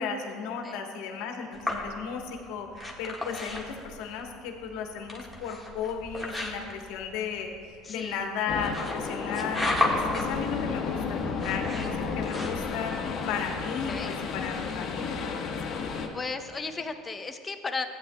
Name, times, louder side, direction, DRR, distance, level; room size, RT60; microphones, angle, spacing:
voice 1, 0.0-15.5, left 6 dB, 75° left, 3 dB, 1.1 m, -35 dB
sound 1, 1.5-13.0, left 1 dB, ahead, 1.5 m, -35 dB
voice 2, 7.8-8.2 13.9-14.1 16.1-17.8, left 4 dB, 25° left, 6 dB, 0.7 m, -35 dB
sound 2, 8.5-16.1, left 5 dB, 45° left, 1.1 m, -32 dB
14.5 x 9.1 x 2.2 m, 2.3 s
supercardioid pair, 100°, 0 cm